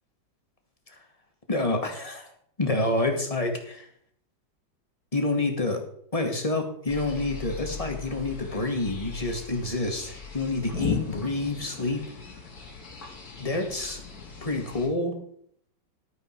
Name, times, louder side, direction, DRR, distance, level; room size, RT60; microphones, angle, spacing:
voice 1, 1.5-2.3 2.6-3.9 5.1-5.8 6.1-12.0 13.4-14.0 14.4-15.1, left 2 dB, 20° left, 4 dB, 1.8 m, -28 dB
sound 1, 6.9-14.9, left 6 dB, 50° left, 2.6 m, -37 dB
12.5 x 9.2 x 4.5 m, 0.67 s
omnidirectional pair, 2.1 m